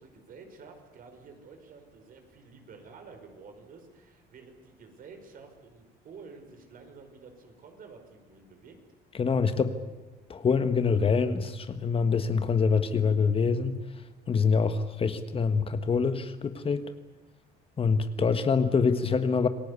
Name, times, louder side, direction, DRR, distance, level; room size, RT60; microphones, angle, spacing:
voice 1, 0.0-8.8, right 4 dB, 55° right, 5 dB, 5.4 m, -50 dB
voice 2, 9.1-9.8 10.3-13.8 14.3-16.8 17.8-19.5, left 5 dB, 35° left, 10 dB, 1.5 m, -25 dB
27.5 x 19.0 x 8.4 m, 1.2 s
cardioid pair, 110°, 17 cm